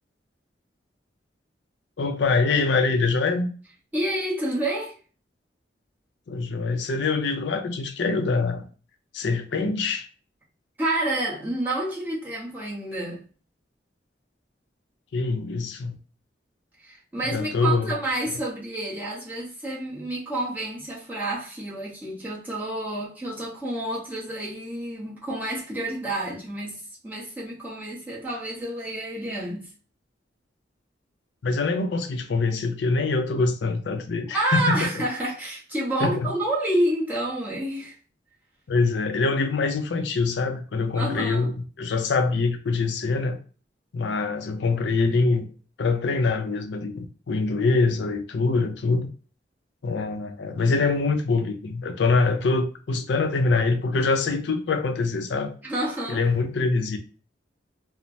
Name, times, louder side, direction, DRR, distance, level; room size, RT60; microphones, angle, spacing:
voice 1, 2.0-3.5 6.3-8.7 9.1-10.1 15.1-16.0 17.3-17.9 31.4-34.9 36.0-36.3 38.7-43.4 43.9-45.5 45.8-49.1 49.8-55.5 56.1-57.0, left 3 dB, 75° left, 0.5 m, -24 dB
voice 2, 3.9-4.9 10.8-13.2 16.8-29.7 34.3-38.0 40.9-41.5 55.6-56.2, right 1 dB, 10° right, 0.9 m, -29 dB
3.1 x 2.0 x 2.6 m
head